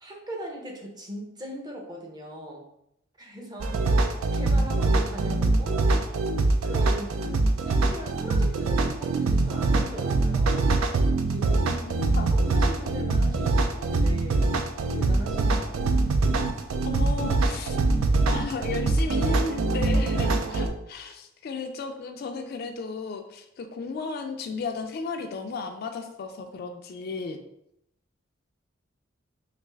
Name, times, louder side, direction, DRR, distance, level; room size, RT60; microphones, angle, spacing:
voice 1, 0.0-2.7 3.2-5.9 6.6-10.7 11.2-11.7 12.5-14.5 14.9-16.0, equal, 20° right, 0 dB, 0.6 m, -39 dB
sound 1, 3.6-20.7, right 3 dB, 85° right, 0.4 m, -23 dB
voice 2, 11.8-12.4 16.8-17.8 18.3-27.4, left 4 dB, 50° left, 6 dB, 0.3 m, -34 dB
3.3 x 2.5 x 3.3 m, 0.78 s
head